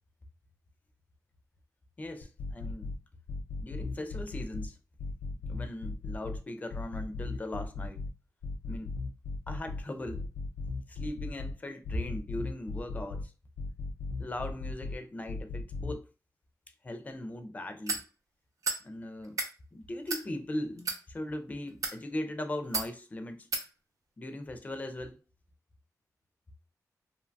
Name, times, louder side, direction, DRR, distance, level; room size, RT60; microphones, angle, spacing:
voice 1, 2.0-2.9 3.6-4.8 5.5-8.0 8.7-8.9 9.5-10.3 10.9-13.3 14.2-16.1 16.8-18.1 18.8-19.4 19.7-23.5 24.2-25.2, left 1 dB, 25° left, 0.4 m, -39 dB
sound 1, 2.2-3.0 3.3-4.7 5.0-6.4 6.7-8.1 8.4-9.8 10.1-11.5 11.8-13.2 13.6-15.0 15.3-15.9, left 3 dB, 90° left, 0.5 m, -36 dB
sound 2, 17.9-18.0 18.6-18.8 19.2-19.5 20.1-20.2 20.8-21.0 21.7-22.0 22.7-22.9 23.5-23.7, right 3 dB, 60° right, 0.5 m, -32 dB
2.7 x 2.2 x 2.5 m
wide cardioid pair, 100°, 7 cm